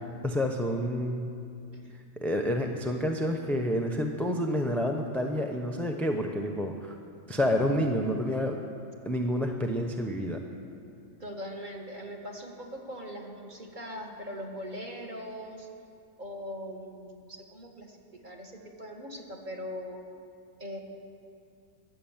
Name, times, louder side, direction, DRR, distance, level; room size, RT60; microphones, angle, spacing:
voice 1, 0.2-1.3 2.2-6.9 7.3-8.6 9.1-10.4, equal, ahead, 2 dB, 0.7 m, -29 dB
voice 2, 11.2-15.7 16.2-20.0 20.6-20.8, equal, 35° right, 1 dB, 1.9 m, -41 dB
22.5 x 8.4 x 7.4 m, 2.4 s
omnidirectional pair, 1.5 m